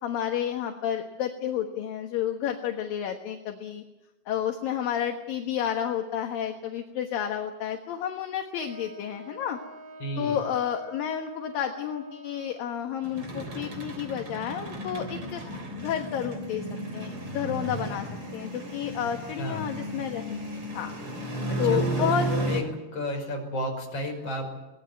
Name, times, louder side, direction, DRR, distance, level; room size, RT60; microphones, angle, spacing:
voice 1, 0.0-3.8 4.3-9.6 10.2-16.6 16.9-18.1 18.3-20.9 21.6-22.3, left 9 dB, 65° left, 4 dB, 2.9 m, -31 dB
Wind instrument woodwind instrument, 8.6-13.0, right 1 dB, 70° right, 4.6 m, -46 dB
voice 2, 10.0-10.4 19.0-19.1 19.4-19.7 21.5-22.6 22.9-24.5, left 1 dB, 30° left, 2 dB, 6.0 m, -33 dB
sound 1, 13.0-22.6, right 1 dB, 35° right, 4.1 m, -33 dB
24.0 x 19.0 x 9.4 m, 1.0 s
omnidirectional pair, 4.6 m